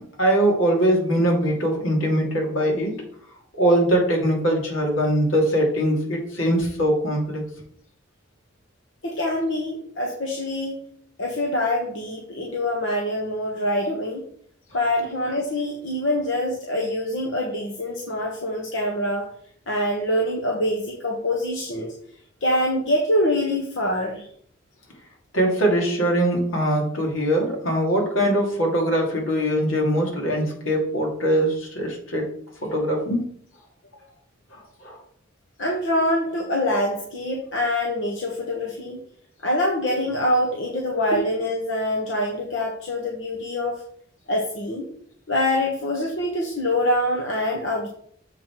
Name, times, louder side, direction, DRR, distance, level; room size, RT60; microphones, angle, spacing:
voice 1, 0.2-3.0 3.5-7.4 25.3-32.3 32.6-33.2 34.8-35.0, right 1 dB, 85° left, 0 dB, 2.6 m, -22 dB
voice 2, 9.0-10.8 11.2-14.2 14.7-19.3 19.7-21.9 22.4-24.2 35.6-39.0 39.4-43.8 44.3-44.9 45.3-47.9, left 1 dB, 65° left, 0 dB, 1.2 m, -25 dB
7.3 x 5.8 x 4.6 m, 0.62 s
head